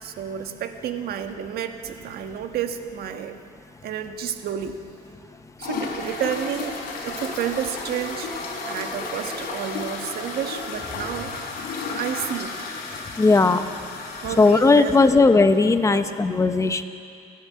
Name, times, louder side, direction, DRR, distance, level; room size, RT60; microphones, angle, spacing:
voice 1, 0.0-3.4 3.8-4.8 5.6-6.8 7.0-8.3 8.7-11.3 11.9-12.5 14.2-15.1 15.9-16.1, right 9 dB, 65° right, 6 dB, 1.5 m, -30 dB
sound 1, 5.6-15.2, left 3 dB, 60° left, 5.0 m, -33 dB
voice 2, 13.2-13.6 14.4-16.8, left 3 dB, 20° left, 9 dB, 1.1 m, -17 dB
30.0 x 11.0 x 8.6 m, 2.5 s
cardioid pair, 110°, 17 cm